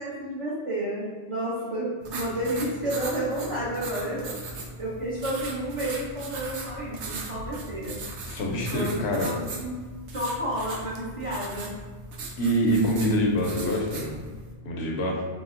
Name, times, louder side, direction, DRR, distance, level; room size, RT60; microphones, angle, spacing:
voice 1, 0.0-4.3 4.8-8.0 8.7-9.7 10.1-11.7, right 1 dB, 30° right, -8 dB, 0.8 m, -31 dB
sound 1, 2.0-14.5, right 2 dB, 85° right, 1.0 m, -38 dB
voice 2, 8.3-9.3 12.4-14.2 14.6-15.2, equal, 75° left, -1 dB, 1.0 m, -25 dB
4.9 x 2.1 x 3.7 m, 1.5 s
omnidirectional pair, 1.1 m